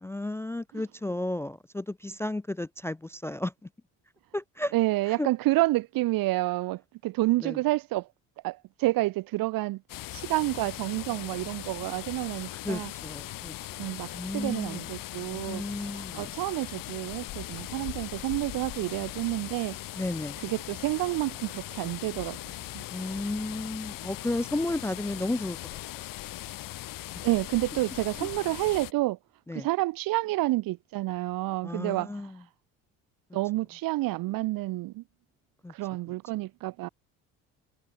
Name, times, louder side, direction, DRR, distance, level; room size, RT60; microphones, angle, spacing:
voice 1, 0.0-3.7 4.3-4.7 5.1-5.3 7.4-7.6 12.6-13.5 14.1-14.9 15.3-16.4 19.9-20.4 22.9-25.6 28.2-28.3 29.5-29.7 31.6-32.4 35.6-35.7, left 2 dB, 5° left, 0.4 m, -33 dB
voice 2, 4.7-8.1 8.4-9.8 10.1-12.9 13.3-13.4 13.8-15.6 16.1-19.8 20.4-22.8 27.2-29.2 29.5-32.1 33.3-35.0 35.7-36.9, right 18 dB, 65° right, 1.2 m, -29 dB
sound 1, 9.9-28.9, left 16 dB, 60° left, 1.3 m, -40 dB
hypercardioid pair, 65°, 37 cm